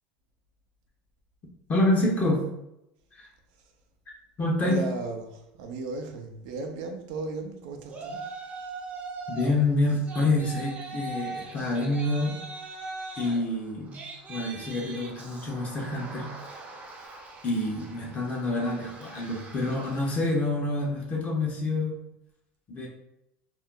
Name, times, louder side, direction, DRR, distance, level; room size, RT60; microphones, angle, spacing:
voice 1, 1.7-2.5 3.1-3.3 4.4-4.8 9.3-12.4 13.2-14.0 14.3-16.3 17.4-22.0 22.7-22.9, left 2 dB, 35° left, -2 dB, 0.7 m, -27 dB
voice 2, 4.6-8.2 17.7-18.1, right 3 dB, 70° right, 4 dB, 0.6 m, -36 dB
Yell, 7.9-9.5 9.9-20.3, right 3 dB, 30° right, 0.7 m, -41 dB
2.4 x 2.1 x 3.6 m, 0.83 s
supercardioid pair, 100°, 5 cm